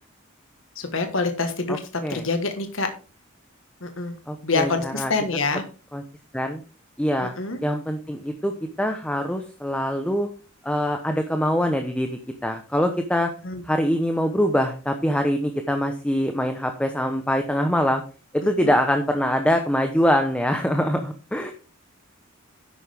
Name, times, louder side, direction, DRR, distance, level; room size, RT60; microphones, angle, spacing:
voice 1, 0.7-1.8 2.1-2.9 3.8-4.1 4.4-5.6 7.2-7.6 13.4-13.6 18.6-18.7, left 3 dB, 70° left, 6 dB, 1.5 m, -26 dB
voice 2, 4.3-5.1 5.9-6.0 6.3-6.6 7.0-7.3 7.6-10.3 10.6-13.3 13.6-18.0 18.3-21.5, equal, 5° left, 6 dB, 0.9 m, -24 dB
11.0 x 8.5 x 3.5 m, 0.35 s
head